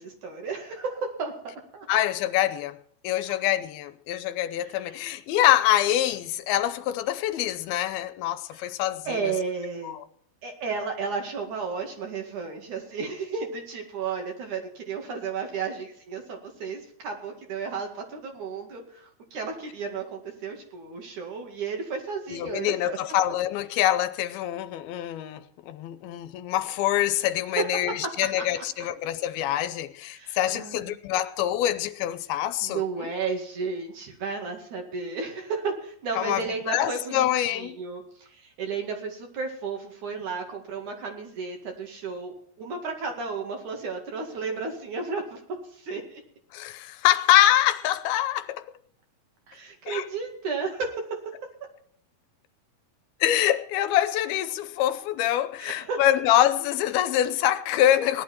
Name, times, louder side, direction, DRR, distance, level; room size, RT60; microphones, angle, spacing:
voice 1, 0.0-1.9 4.6-5.0 8.5-8.6 9.1-10.0 10.4-23.0 27.6-27.9 28.4-28.6 30.1-30.9 32.6-46.2 49.5-51.0 55.6-56.0, right 4 dB, 55° right, 3.4 m, -33 dB
voice 2, 1.9-2.8 3.0-9.3 9.8-10.0 22.3-33.1 36.1-37.8 46.5-48.7 49.9-50.0 53.2-58.2, left 13 dB, 80° left, 2.6 m, -25 dB
18.0 x 11.0 x 4.5 m
omnidirectional pair, 4.4 m